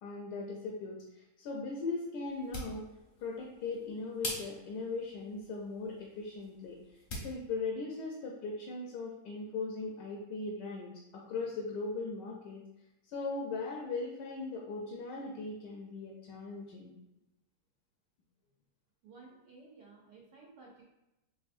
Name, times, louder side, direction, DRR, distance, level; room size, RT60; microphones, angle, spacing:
voice 1, 0.0-2.8 3.2-6.8 7.2-12.6 13.1-17.0, left 3 dB, 80° left, 0 dB, 1.2 m, -39 dB
sound 1, 2.2-7.4, left 1 dB, 40° left, 0.7 m, -45 dB
voice 2, 19.0-20.8, right 3 dB, 80° right, -3 dB, 1.4 m, -55 dB
5.3 x 2.5 x 2.5 m, 0.95 s
omnidirectional pair, 1.8 m